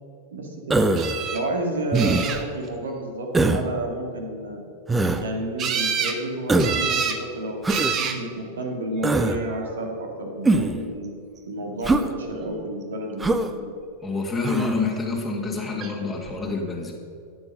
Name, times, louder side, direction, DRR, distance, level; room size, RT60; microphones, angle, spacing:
voice 1, 0.3-0.8 1.3-4.6 5.2-11.2 11.4-13.7, right 1 dB, 65° right, 2 dB, 2.2 m, -31 dB
Human voice, 0.7-1.2 1.9-2.4 3.3-3.7 4.9-5.2 6.5-6.8 7.6-8.0 9.0-9.4 10.4-10.8 11.8-12.1 13.2-13.5 14.4-14.8, right 2 dB, 10° right, 0.7 m, -21 dB
sound 1, 1.0-1.4 1.9-2.7 5.6-6.2 6.6-7.2 7.7-8.2 9.1-9.6 15.8-15.9 16.3-16.4, right 6 dB, 30° right, 1.2 m, -27 dB
voice 2, 14.0-16.9, left 3 dB, 10° left, -2 dB, 1.9 m, -27 dB
13.5 x 8.9 x 5.5 m, 2.4 s
figure-of-eight pair, 90°, 0 cm